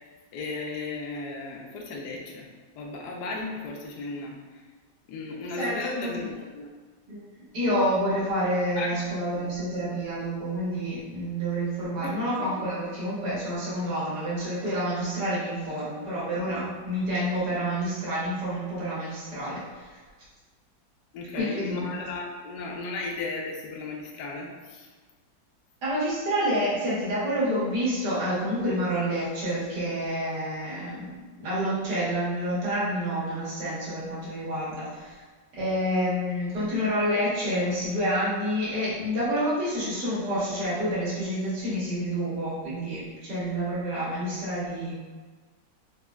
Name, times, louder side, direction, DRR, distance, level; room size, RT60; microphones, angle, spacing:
voice 1, 0.3-2.5 2.8-4.6 5.1-6.7 8.8-9.4 12.0-12.5 21.1-24.9, left 3 dB, 70° left, -1 dB, 1.1 m, -35 dB
voice 2, 5.5-6.1 7.1-7.2 7.5-20.0 21.3-21.9 25.8-35.2 35.5-44.9, equal, 60° right, -9 dB, 1.8 m, -28 dB
4.2 x 2.8 x 2.3 m, 1.4 s
omnidirectional pair, 2.0 m